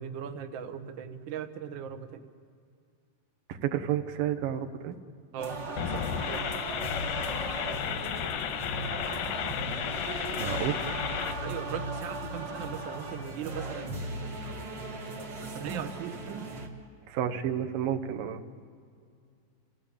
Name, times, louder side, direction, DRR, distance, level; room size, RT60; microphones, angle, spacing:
voice 1, 0.0-2.3 5.3-6.6 11.4-13.9 14.2-14.3 15.5-16.5, right 8 dB, 65° right, 6 dB, 1.2 m, -39 dB
voice 2, 3.5-5.0 10.4-10.8 17.1-18.4, right 10 dB, 85° right, 6 dB, 2.8 m, -30 dB
sound 1, 5.4-16.7, right 2 dB, 40° right, 1.9 m, -37 dB
sound 2, 5.7-11.3, left 9 dB, 85° left, 2.8 m, -33 dB
29.5 x 15.5 x 8.7 m, 2.3 s
omnidirectional pair, 3.9 m